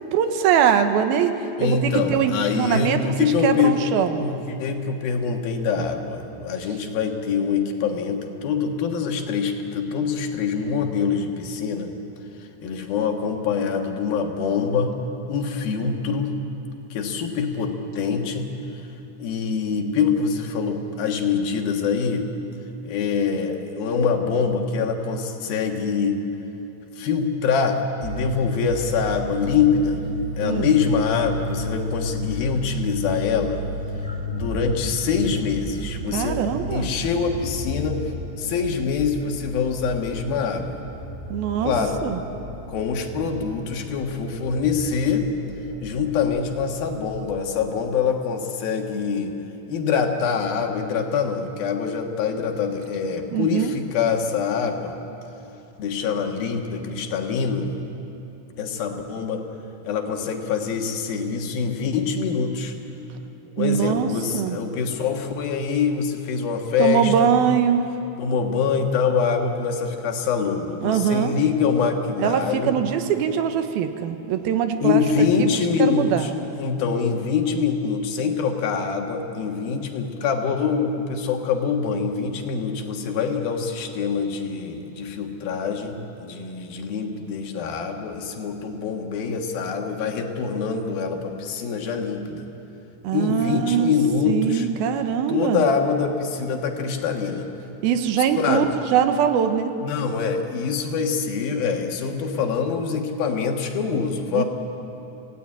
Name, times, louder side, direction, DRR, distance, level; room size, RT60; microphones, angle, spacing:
voice 1, 0.1-3.1 3.4-4.2 30.4-30.7 36.1-36.9 41.3-41.7 42.0-42.2 53.3-53.7 63.6-64.6 66.8-67.8 70.8-71.3 72.2-75.0 75.4-75.5 75.8-76.3 93.0-93.9 94.3-95.6 97.8-98.6 98.9-99.7 104.3-104.4, right 8 dB, 85° right, 8 dB, 3.0 m, -22 dB
voice 2, 1.6-3.8 4.1-11.9 12.6-14.9 15.3-16.4 16.9-18.5 19.2-22.3 22.8-26.2 27.0-30.0 30.4-33.6 34.3-36.4 36.7-38.0 38.4-40.8 41.6-42.0 42.7-45.3 45.8-49.3 49.7-54.9 55.8-57.7 58.6-59.4 59.8-62.7 63.6-67.3 68.2-72.7 74.8-92.5 93.1-94.7 95.3-97.5 97.8-97.9 98.4-98.7 99.8-104.4, left 5 dB, 75° left, 3 dB, 3.4 m, -24 dB
sound 1, 28.0-47.6, left 1 dB, 20° right, 1.6 m, -33 dB
27.5 x 17.5 x 8.8 m, 3.0 s
omnidirectional pair, 4.3 m